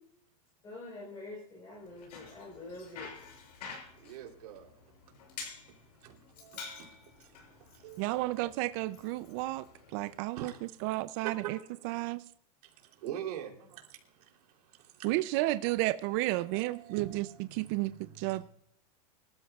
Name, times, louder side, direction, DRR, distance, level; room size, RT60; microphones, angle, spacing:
voice 1, 0.6-3.2, left 2 dB, 15° left, -3 dB, 4.4 m, -46 dB
Bicycle, 1.8-10.2, left 5 dB, 75° left, 6.7 m, -49 dB
voice 2, 4.0-4.7 6.0-8.4 10.3-11.0 11.2-12.1 12.6-15.1 16.4-18.4, right 11 dB, 70° right, 2 dB, 3.4 m, -45 dB
voice 3, 8.0-9.6 9.9-10.5 10.8-11.6 11.8-12.2 15.0-17.3 17.5-18.4, right 18 dB, 40° right, 13 dB, 0.5 m, -32 dB
25.0 x 13.5 x 2.4 m, 0.69 s
supercardioid pair, 155°, 21 cm